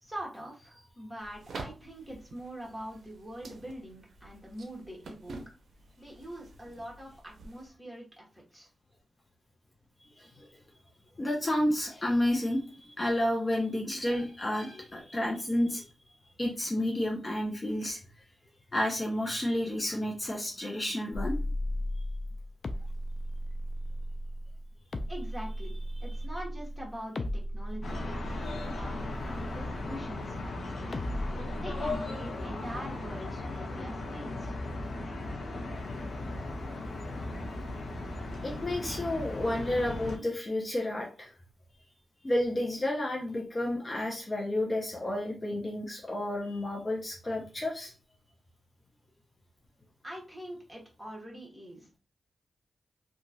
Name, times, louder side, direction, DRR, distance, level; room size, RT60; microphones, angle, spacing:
voice 1, 0.0-5.4 6.0-8.7 25.1-25.7 26.0-28.0 28.6-30.9 31.6-34.5 50.0-52.0, equal, 10° right, -3 dB, 1.4 m, -43 dB
sound 1, 1.2-7.7, right 3 dB, 80° right, 0.5 m, -48 dB
voice 2, 11.2-15.8 16.4-18.0 18.7-21.4 38.4-41.3 42.2-47.9, left 1 dB, 30° left, -1 dB, 0.7 m, -31 dB
sound 2, 21.1-30.4 30.9-31.9, equal, 50° left, 0.4 m, -36 dB
sound 3, 27.8-40.2, left 2 dB, 70° left, 0.7 m, -37 dB
2.9 x 2.4 x 2.7 m, 0.34 s
cardioid pair, 70°, 0 cm